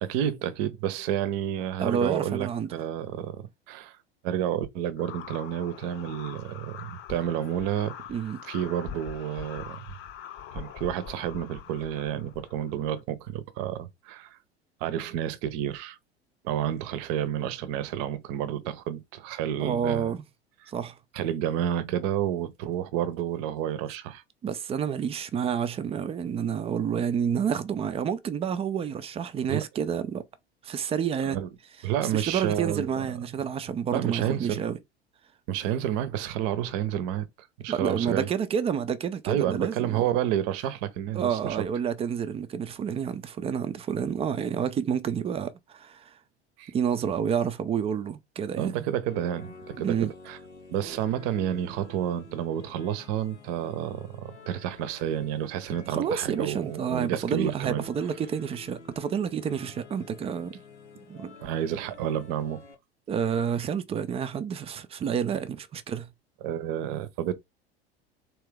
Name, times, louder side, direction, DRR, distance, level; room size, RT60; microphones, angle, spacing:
voice 1, 0.0-4.0 4.2-7.9 8.4-9.8 10.5-14.4 14.8-16.0 16.4-20.1 21.1-24.2 29.5-29.6 31.2-31.5 31.8-33.0 33.9-34.6 35.5-38.3 39.3-41.7 46.6-46.7 48.6-50.0 50.3-50.4 50.7-57.9 61.4-62.6 66.4-67.3, right 10 dB, 45° right, 0.7 m, -30 dB
voice 2, 1.8-2.7 8.1-8.4 19.6-20.2 20.7-21.0 24.4-30.3 30.6-31.4 32.1-34.8 37.7-40.0 41.1-46.1 46.7-48.8 49.8-50.1 55.9-60.5 61.1-61.4 63.1-66.1, right 7 dB, 20° right, 0.5 m, -29 dB
sound 1, 5.0-13.0, left 9 dB, 35° left, 0.7 m, -43 dB
sound 2, 49.0-62.7, left 3 dB, 90° left, 0.9 m, -49 dB
3.6 x 2.9 x 3.4 m
figure-of-eight pair, 75°, 34 cm